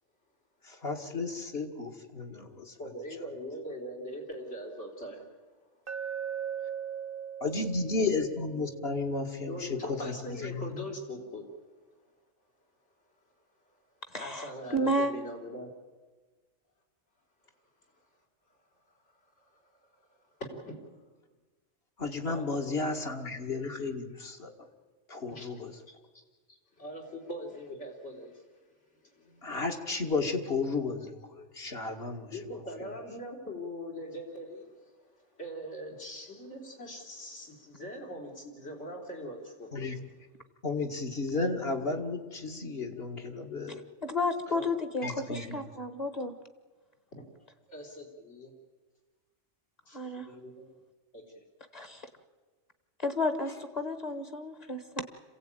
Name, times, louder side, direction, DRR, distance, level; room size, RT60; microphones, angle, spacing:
voice 1, 0.6-2.7 7.4-10.1 10.4-10.9 22.0-24.5 25.1-25.7 29.4-32.4 39.7-39.9 40.6-43.8 45.0-45.6, left 3 dB, 55° left, 3 dB, 2.2 m, -33 dB
voice 2, 2.8-5.6 9.5-11.6 13.6-13.7 14.2-15.7 17.9-18.1 18.5-18.6 18.9-21.0 22.3-22.8 25.3-25.9 26.5-29.5 32.3-39.9 44.5-44.7 45.0-45.1 47.1-47.2 47.7-48.5 49.9-50.8 51.1-51.4, equal, 75° left, 0 dB, 4.2 m, -42 dB
Glass, 5.9-10.0, right 8 dB, 50° right, 1.0 m, -40 dB
voice 3, 14.1-14.5 14.7-15.1 44.0-46.3 49.9-50.3 51.7-52.1 53.0-55.0, left 1 dB, 35° left, 8 dB, 1.5 m, -32 dB
26.5 x 16.0 x 9.1 m, 1.4 s
omnidirectional pair, 1.2 m